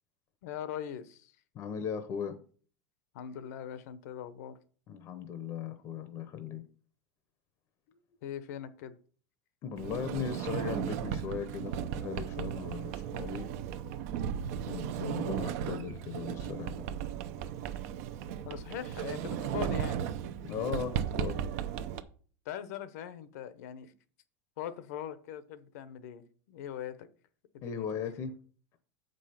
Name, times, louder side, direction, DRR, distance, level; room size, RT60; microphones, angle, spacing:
voice 1, 0.4-1.3 3.1-4.6 8.2-9.0 18.4-20.0 22.4-23.9 24.6-27.1 27.5-27.9, left 9 dB, 70° left, 0.9 m, -41 dB
voice 2, 1.5-2.4 4.9-6.6 9.6-13.5 14.7-16.9 20.4-21.4 27.6-28.3, left 7 dB, 35° left, 0.7 m, -38 dB
Sliding door, 9.8-22.0, right 9 dB, 60° right, 0.7 m, -36 dB
7.2 x 5.4 x 5.7 m
supercardioid pair, 160°, 9 cm